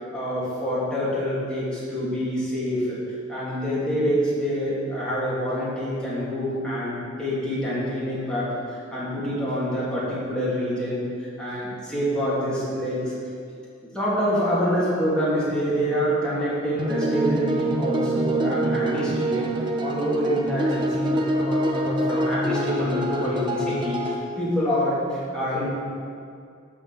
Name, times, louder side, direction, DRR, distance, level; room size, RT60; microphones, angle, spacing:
voice 1, 0.1-3.0 3.3-11.0 11.4-13.1 13.9-19.5 19.8-25.7, equal, 5° left, -9 dB, 2.8 m, -26 dB
sound 1, 16.8-24.2, right 1 dB, 25° right, 0.9 m, -25 dB
13.5 x 5.0 x 6.3 m, 2.3 s
head